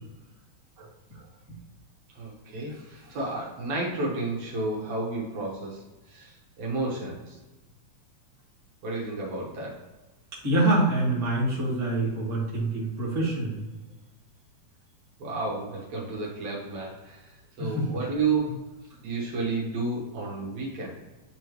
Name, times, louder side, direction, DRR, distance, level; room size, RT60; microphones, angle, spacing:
voice 1, 2.1-7.4 8.8-9.8 15.2-18.6 19.0-20.9, right 3 dB, 70° right, -3 dB, 2.3 m, -31 dB
voice 2, 10.4-13.6 17.6-17.7, right 2 dB, 10° right, -7 dB, 1.5 m, -25 dB
9.0 x 3.4 x 3.1 m, 1.1 s
omnidirectional pair, 3.5 m